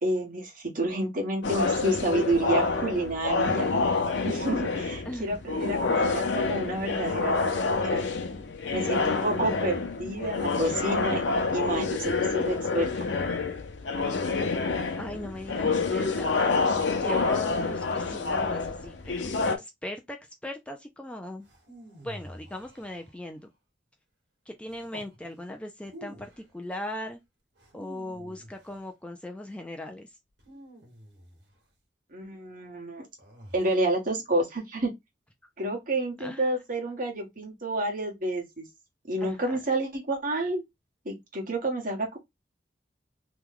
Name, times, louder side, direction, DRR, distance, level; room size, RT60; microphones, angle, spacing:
voice 1, 0.0-3.7 4.2-8.0 8.7-11.2 11.5-12.9 32.1-33.0 33.5-34.9 35.6-38.7 39.1-40.6 41.0-42.2, right 1 dB, 50° right, 1.3 m, -29 dB
sound 1, 1.4-19.6, left 4 dB, 85° left, 0.6 m, -28 dB
voice 2, 5.1-5.4 8.9-9.3 15.0-16.4 16.9-20.2 20.4-21.5 22.0-23.4 24.5-27.2 27.7-30.1 36.2-36.5 39.2-39.6, left 1 dB, 5° left, 0.3 m, -39 dB
sound 2, 21.4-23.4 24.7-25.2 25.8-26.5 27.6-28.9 30.4-31.6 33.2-34.0, equal, 75° right, 1.4 m, -49 dB
3.0 x 2.2 x 3.6 m
head